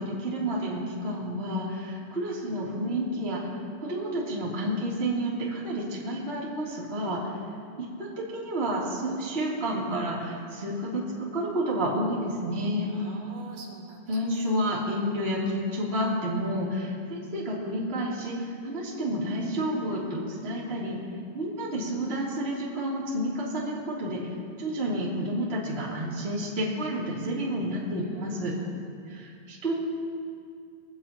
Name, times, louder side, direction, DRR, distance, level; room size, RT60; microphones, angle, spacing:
voice 1, 0.0-3.5 3.8-7.2 8.0-12.9 14.1-21.0 21.3-24.3 24.6-28.5 29.1-29.8, equal, 15° right, -6 dB, 2.5 m, -30 dB
voice 2, 12.9-14.0 14.3-14.7 28.0-28.7, right 4 dB, 65° right, 0 dB, 2.9 m, -43 dB
23.0 x 15.5 x 3.0 m, 2.3 s
omnidirectional pair, 5.2 m